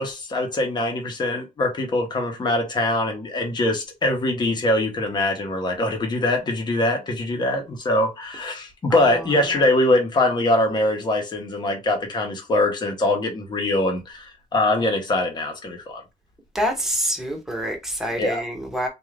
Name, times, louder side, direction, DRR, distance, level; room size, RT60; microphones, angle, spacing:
voice 1, 0.0-16.0 18.2-18.4, left 1 dB, 30° left, 1.2 m, -23 dB
voice 2, 8.9-9.4 16.5-18.9, equal, 5° right, 1.0 m, -27 dB
3.8 x 2.7 x 3.3 m
cardioid pair, 170°, 14 cm